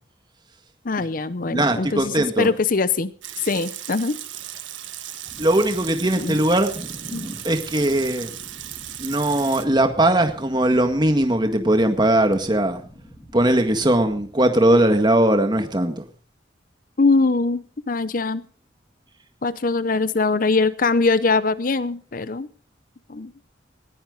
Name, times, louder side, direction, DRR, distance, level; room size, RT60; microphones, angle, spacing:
voice 1, 0.8-3.1 3.4-4.2 6.2-6.4 7.1-7.3 17.0-18.4 19.4-22.5 23.1-23.3, left 3 dB, 45° left, 0.7 m, -22 dB
voice 2, 1.5-2.5 5.4-8.3 9.0-12.8 13.3-16.0, right 1 dB, 25° right, 1.8 m, -20 dB
Water tap faucet / Sink (filling or washing) / Liquid, 3.2-9.7, right 12 dB, 80° right, 1.6 m, -36 dB
sound 1, 5.2-14.3, equal, 10° left, 6.4 m, -47 dB
19.5 x 15.0 x 3.9 m
head